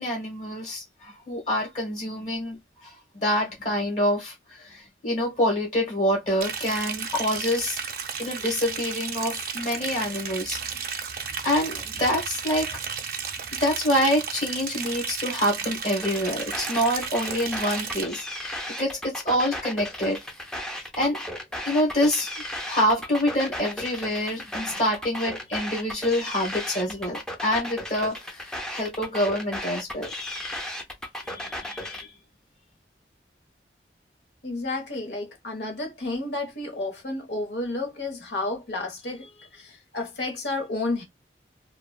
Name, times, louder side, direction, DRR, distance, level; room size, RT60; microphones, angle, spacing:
voice 1, 0.0-2.6 2.8-7.8 8.2-10.6 11.4-12.8 13.6-20.2 21.0-21.2 21.6-22.3 22.7-30.6 31.2-32.1, equal, 40° left, 1.1 m, -26 dB
Liquid, 6.4-18.0, right 6 dB, 55° right, 0.5 m, -33 dB
sound 1, 16.0-32.0, left 1 dB, 5° left, 0.5 m, -35 dB
voice 2, 34.4-41.0, left 2 dB, 85° left, 1.1 m, -31 dB
2.9 x 2.3 x 2.2 m
head